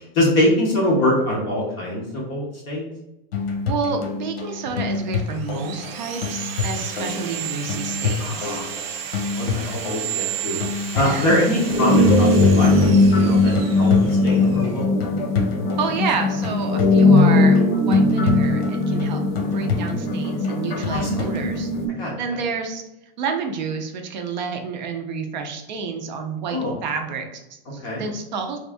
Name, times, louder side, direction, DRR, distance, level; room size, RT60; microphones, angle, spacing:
voice 1, 0.1-2.9 8.2-8.7 9.3-10.6 10.9-13.9 14.2-14.9 20.9-21.3 22.0-22.1 26.5-26.7 27.8-28.0, left 1 dB, 15° left, -3 dB, 0.5 m, -23 dB
sound 1, 3.3-21.5, left 5 dB, 90° left, 0.9 m, -29 dB
voice 2, 3.7-8.6 11.0-11.4 15.8-19.2 19.5-21.7 22.2-22.8 23.2-28.6, right 5 dB, 50° right, 4 dB, 0.5 m, -29 dB
Sawing, 5.0-14.8, right 8 dB, 80° right, 0.7 m, -33 dB
sound 2, 11.6-21.9, left 2 dB, 55° left, 0.6 m, -19 dB
3.5 x 2.6 x 3.3 m, 0.94 s
supercardioid pair, 180°, 30 cm